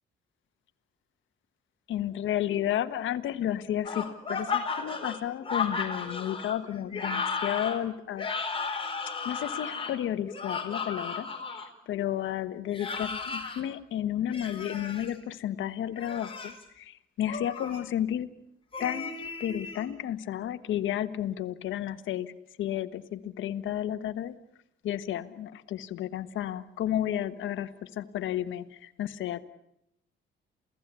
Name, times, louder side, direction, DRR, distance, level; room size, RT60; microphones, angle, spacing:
voice 1, 1.9-8.8 9.2-18.3 18.8-22.3 22.6-24.4 24.8-29.4, left 11 dB, 75° left, 11 dB, 1.4 m, -32 dB
sound 1, 3.8-11.7 12.7-13.6 14.3-15.1 15.9-16.6 17.3-17.8 18.7-19.9, left 5 dB, 25° left, 4.6 m, -34 dB
28.5 x 17.0 x 8.3 m, 0.80 s
cardioid pair, 90°, 20 cm